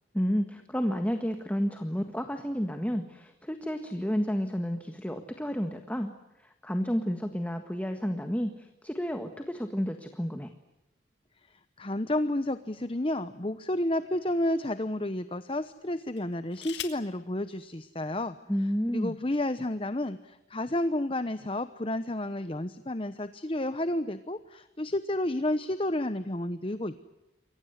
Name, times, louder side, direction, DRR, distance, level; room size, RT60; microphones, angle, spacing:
voice 1, 0.1-6.1 6.4-10.5 18.5-19.2, equal, 10° left, 6 dB, 1.6 m, -31 dB
voice 2, 11.5-18.4 18.9-27.0, left 1 dB, 30° left, 12 dB, 0.9 m, -31 dB
sound 1, 12.4-13.6 14.3-14.5 16.1-17.2 18.3-18.4 18.7-19.1, left 11 dB, 65° left, 2.7 m, -43 dB
29.0 x 23.5 x 8.1 m, 0.98 s
head